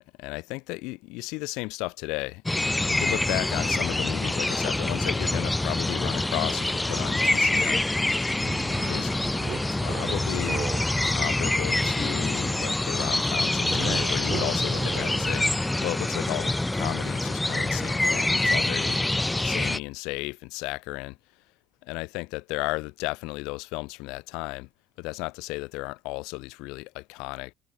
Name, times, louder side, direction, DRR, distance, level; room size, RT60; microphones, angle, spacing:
voice 1, 0.2-2.4 2.7-7.8 8.7-9.1 9.8-10.7 11.0-19.0 19.4-21.2 21.8-24.7 25.0-27.5, left 25 dB, 90° left, 7.0 m, -34 dB
sound 1, 2.5-19.8, left 2 dB, 10° left, 1.4 m, -26 dB
sound 2, 8.4-11.0 13.6-15.9, right 8 dB, 40° right, 6.0 m, -37 dB
cardioid pair, 135°, 0 cm